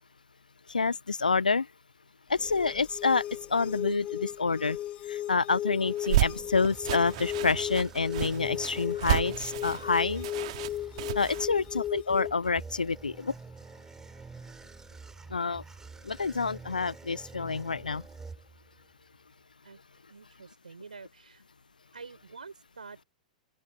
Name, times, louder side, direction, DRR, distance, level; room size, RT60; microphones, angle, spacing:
voice 1, 0.7-1.7 2.3-3.2 3.5-4.8 5.1-10.3 11.1-13.3 15.3-15.6 16.0-18.0, left 4 dB, 80° left, 0.6 m, -28 dB
sound 1, 2.3-12.3, left 12 dB, 25° left, 1.0 m, -36 dB
sound 2, 5.9-11.5, right 16 dB, 50° right, 2.1 m, -31 dB
sound 3, 6.1-18.9, right 4 dB, 10° right, 3.1 m, -48 dB
voice 2, 11.3-11.7 19.6-19.8 20.1-21.4 21.9-23.1, right 4 dB, 75° right, 6.0 m, -48 dB
open air
figure-of-eight pair, 100°, 4 cm